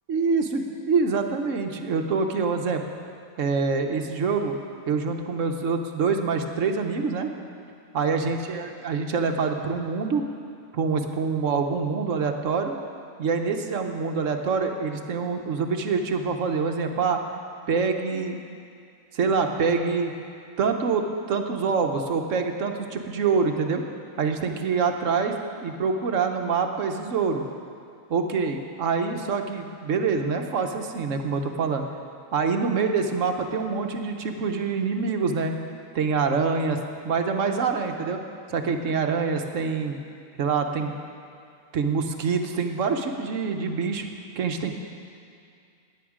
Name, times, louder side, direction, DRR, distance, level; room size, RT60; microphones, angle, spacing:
voice 1, 0.1-2.8 3.4-4.5 4.9-7.3 7.9-10.2 10.7-12.7 13.2-17.2 17.7-18.4 19.1-20.1 20.6-23.8 24.2-25.4 25.6-27.4 28.1-31.8 32.3-35.6 35.9-36.8 37.0-38.2 38.5-40.0 40.4-40.9 41.7-44.1 44.4-44.7, right 5 dB, 65° right, 5 dB, 1.2 m, -25 dB
16.5 x 10.0 x 5.0 m, 2.3 s
omnidirectional pair, 1.5 m